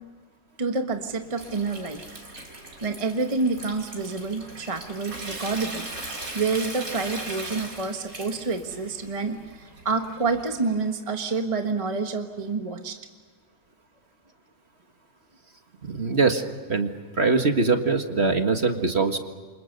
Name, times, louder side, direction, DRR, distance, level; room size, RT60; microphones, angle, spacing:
voice 1, 0.6-2.0 2.8-5.9 6.3-13.0, right 4 dB, 20° right, 5 dB, 1.4 m, -28 dB
Water tap faucet / Sink (filling or washing) / Trickle dribble, 0.9-10.8, right 2 dB, 55° right, 4.3 m, -39 dB
voice 2, 15.9-16.4 16.7-16.9 17.2-19.2, right 4 dB, 40° right, 5 dB, 1.9 m, -22 dB
29.0 x 26.5 x 6.7 m, 1.5 s
omnidirectional pair, 1.8 m